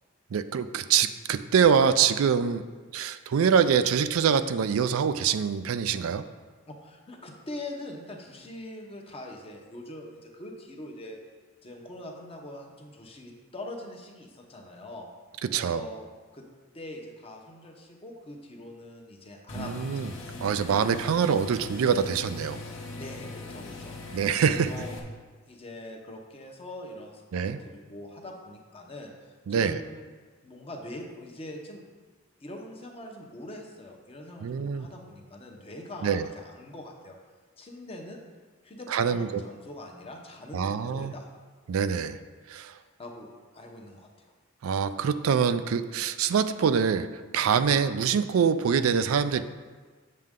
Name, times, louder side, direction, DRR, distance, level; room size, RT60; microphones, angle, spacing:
voice 1, 0.3-2.6 2.9-6.3 15.4-15.9 19.6-20.1 20.4-22.6 24.1-24.7 27.3-27.6 29.5-29.8 34.4-34.9 36.0-36.3 38.9-39.4 40.5-41.1 41.7-42.2 42.5-42.7 44.6-47.1 47.3-49.4, right 7 dB, 85° right, 12 dB, 0.4 m, -25 dB
voice 2, 6.7-11.2 11.6-15.1 15.5-16.0 16.3-16.5 16.7-19.8 23.0-24.9 25.5-30.1 30.4-31.8 32.4-37.2 37.6-38.2 38.6-41.3 42.8-43.3 43.5-44.3, left 1 dB, 25° left, 1 dB, 0.9 m, -43 dB
sound 1, 19.5-25.0, left 2 dB, 65° left, 1.1 m, -40 dB
7.5 x 6.5 x 3.7 m, 1.4 s
head